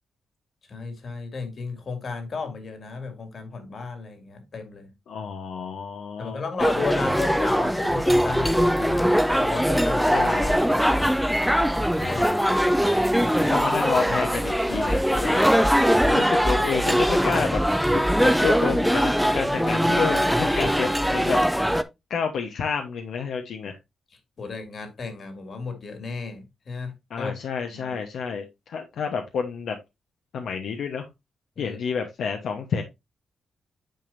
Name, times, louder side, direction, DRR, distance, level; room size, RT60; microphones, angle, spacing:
voice 1, 0.7-4.9 6.2-10.3 10.6-11.1 12.1-12.2 24.4-27.3 27.7-28.0 31.6-31.8, left 4 dB, 45° left, 2.3 m, -34 dB
voice 2, 5.1-6.4 10.0-10.7 11.9-12.4 12.7-12.8 13.4-15.5 16.0-17.6 17.9-21.4 22.1-23.8 27.1-29.8 30.3-31.0 31.6-32.8, left 6 dB, 75° left, 1.1 m, -30 dB
sound 1, 6.6-21.8, equal, ahead, 0.5 m, -21 dB
9.2 x 5.3 x 2.6 m
wide cardioid pair, 145°, 0 cm